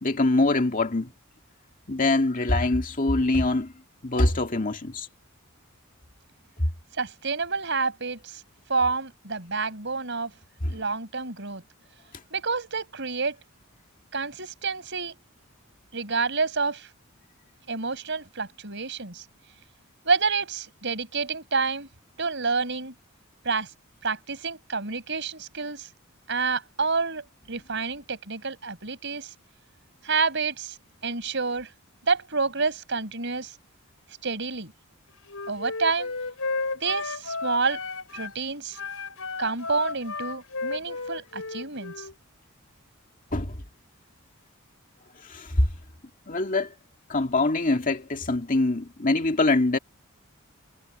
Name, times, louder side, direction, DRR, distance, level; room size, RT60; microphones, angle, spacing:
voice 1, 0.0-1.1 1.9-3.7 4.0-5.1 10.6-10.7 43.3-43.6 45.3-45.5 46.3-46.7 47.1-49.8, left 2 dB, 40° left, 2.2 m, -24 dB
voice 2, 7.0-8.4 8.7-10.3 10.7-11.6 12.3-13.4 14.1-15.2 15.9-16.9 17.7-19.2 20.0-21.9 22.2-22.9 23.4-23.7 24.0-25.9 26.3-29.3 30.0-30.8 31.0-31.7 32.0-33.5 34.2-34.7 35.5-36.2 36.8-37.8 38.1-38.8 39.4-42.1, right 4 dB, 55° right, 5.4 m, -28 dB
Wind instrument woodwind instrument, 35.3-38.4 38.7-42.1, left 3 dB, 75° left, 5.6 m, -33 dB
head